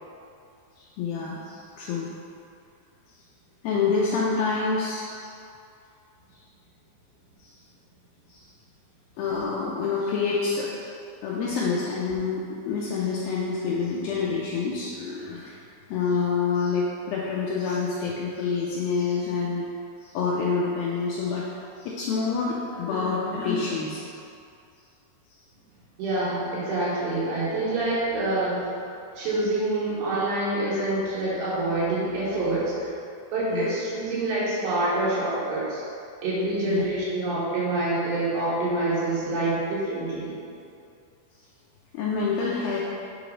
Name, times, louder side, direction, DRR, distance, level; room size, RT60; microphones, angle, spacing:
voice 1, 0.8-2.1 3.6-5.3 7.4-7.6 8.3-8.5 9.2-11.0 11.2-15.6 15.9-19.7 20.0-21.5 21.8-24.1 33.5-33.7 36.6-36.9 41.9-42.8, left 5 dB, 85° left, -5 dB, 2.1 m, -27 dB
voice 2, 26.0-28.6 29.2-32.9 33.3-35.8 36.2-40.4, right 2 dB, 85° right, -8 dB, 3.8 m, -26 dB
7.6 x 3.1 x 5.0 m, 2.5 s
omnidirectional pair, 4.9 m